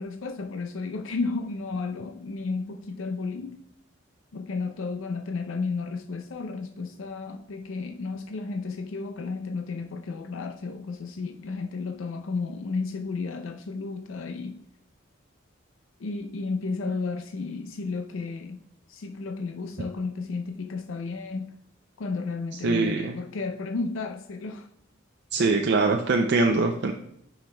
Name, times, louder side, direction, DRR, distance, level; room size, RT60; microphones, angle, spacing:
voice 1, 0.0-3.6 4.3-14.6 16.0-18.6 18.9-21.6 22.0-24.7, left 4 dB, 85° left, 0.5 m, -33 dB
voice 2, 22.6-23.1 25.3-26.9, right 3 dB, 55° right, 0.4 m, -23 dB
8.9 x 5.7 x 2.2 m
head